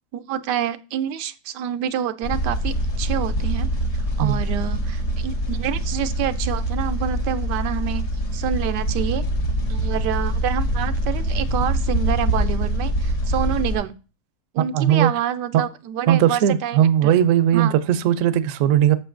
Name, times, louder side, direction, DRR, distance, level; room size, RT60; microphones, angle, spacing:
voice 1, 0.1-3.7 4.2-8.1 8.3-9.3 9.7-13.9 14.5-17.2 17.5-17.7, right 10 dB, 90° right, 1.2 m, -27 dB
sound 1, 2.2-13.8, right 1 dB, 75° left, 2.0 m, -24 dB
voice 2, 14.6-15.1 16.1-19.0, right 10 dB, 65° right, 0.8 m, -18 dB
7.9 x 6.7 x 2.5 m
omnidirectional pair, 1.8 m